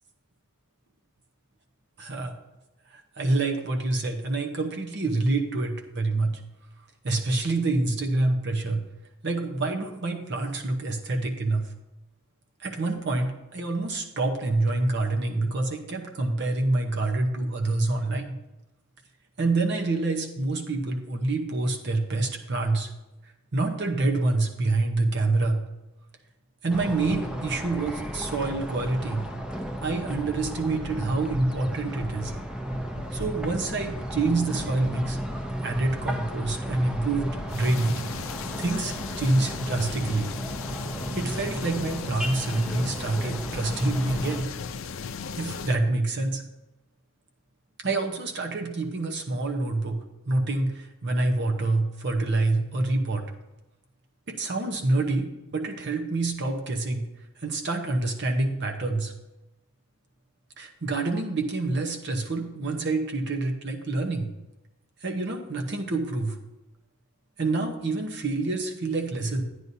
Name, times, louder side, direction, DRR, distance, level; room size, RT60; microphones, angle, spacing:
voice 1, 2.0-2.4 2.9-6.4 7.0-8.8 9.2-11.7 12.6-18.4 19.4-22.9 23.5-25.6 26.6-29.2 29.8-32.3 33.1-35.2 35.6-38.0 38.6-40.3 41.1-44.5 45.4-46.4 47.8-53.2 54.3-57.1 57.4-59.1 60.6-64.3 65.0-66.4 67.4-69.4, right 2 dB, 55° right, 3 dB, 0.9 m, -27 dB
sound 1, 26.7-44.4, equal, 5° right, 0.7 m, -34 dB
sound 2, 30.1-30.5 30.8-31.7 32.0-32.4 32.7-33.6 33.9-34.3 34.6-35.4 35.7-36.1 36.4-37.5, left 1 dB, 80° right, 1.5 m, -40 dB
sound 3, 37.5-45.8, left 6 dB, 65° left, 0.5 m, -37 dB
11.0 x 9.5 x 2.7 m, 0.98 s
head